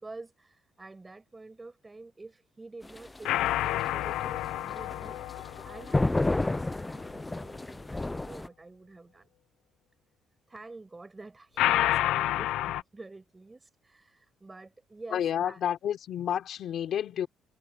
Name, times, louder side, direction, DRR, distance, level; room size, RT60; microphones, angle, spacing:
voice 1, 0.0-9.3 10.5-15.6, right 3 dB, 15° right, 7.7 m, -48 dB
sound 1, 2.8-8.5, left 2 dB, 15° left, 0.5 m, -31 dB
sound 2, 3.2-6.6 11.6-12.8, left 14 dB, 90° left, 0.6 m, -29 dB
voice 2, 15.1-17.3, left 9 dB, 60° left, 3.6 m, -30 dB
cardioid pair, 125°, 0 cm